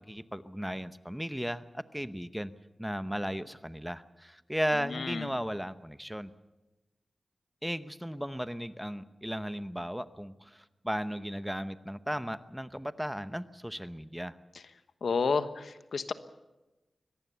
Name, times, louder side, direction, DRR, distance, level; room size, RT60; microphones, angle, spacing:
voice 1, 0.0-2.5 2.8-6.3 7.6-14.3, equal, 5° right, 12 dB, 0.8 m, -36 dB
voice 2, 4.9-5.3 15.0-16.1, left 5 dB, 85° left, 11 dB, 1.2 m, -30 dB
24.0 x 18.5 x 6.9 m, 1.1 s
wide cardioid pair, 105°, 0 cm